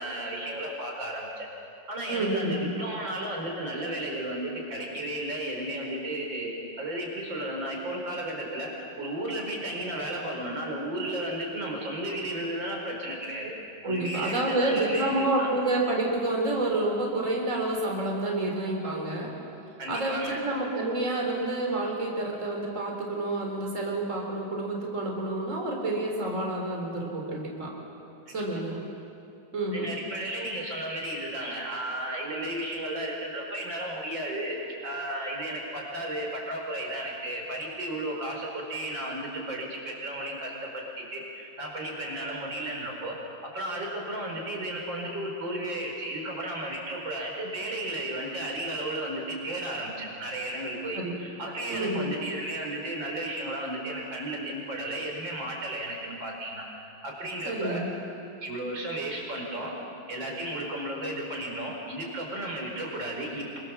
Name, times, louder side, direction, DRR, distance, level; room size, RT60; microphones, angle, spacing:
voice 1, 0.0-1.5 1.9-6.5 6.8-8.7 9.0-13.5 13.8-15.5 19.8-20.4 28.3-28.6 29.7-43.2 43.4-56.6 57.0-57.8 58.4-59.8 60.1-63.6, right 1 dB, 65° right, -1 dB, 5.6 m, -34 dB
voice 2, 2.1-2.7 13.8-19.3 19.9-27.7 28.3-28.8 29.5-29.9 50.9-51.1 51.7-52.1 57.5-57.9, right 2 dB, 35° right, -1 dB, 4.0 m, -29 dB
27.0 x 24.5 x 7.3 m, 2.7 s
omnidirectional pair, 2.2 m